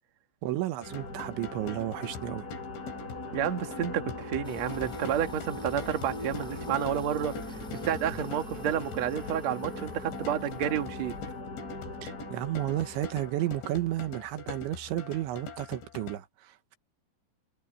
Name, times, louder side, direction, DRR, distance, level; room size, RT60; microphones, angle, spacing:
voice 1, 0.4-2.5 12.0-16.8, right 14 dB, 85° right, 3.6 m, -32 dB
sound 1, 0.8-16.2, left 4 dB, 75° left, 6.1 m, -44 dB
sound 2, 0.9-14.4, left 2 dB, 20° left, 5.8 m, -41 dB
voice 2, 3.3-11.1, right 9 dB, 50° right, 2.2 m, -30 dB
sound 3, 4.4-11.4, equal, 5° left, 0.6 m, -49 dB
omnidirectional pair, 5.3 m